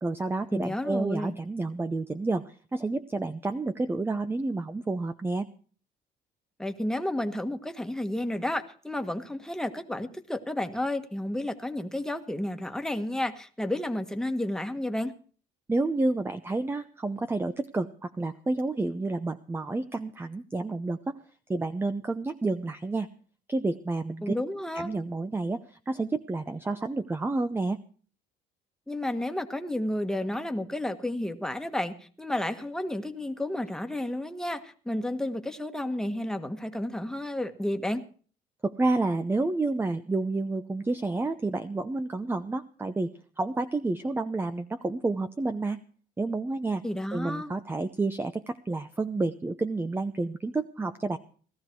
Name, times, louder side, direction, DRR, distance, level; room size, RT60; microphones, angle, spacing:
voice 1, 0.0-2.4 2.7-5.5 15.7-21.2 21.5-23.1 23.5-24.3 24.7-25.6 25.9-27.8 38.6-43.1 43.4-45.8 46.2-46.8 47.1-51.2, right 2 dB, 15° right, 10 dB, 0.7 m, -29 dB
voice 2, 0.5-1.4 6.6-15.1 24.2-24.9 28.9-38.0 46.8-47.5, left 1 dB, 5° left, 6 dB, 1.5 m, -31 dB
17.5 x 13.5 x 4.6 m, 0.42 s
cardioid pair, 110°, 17 cm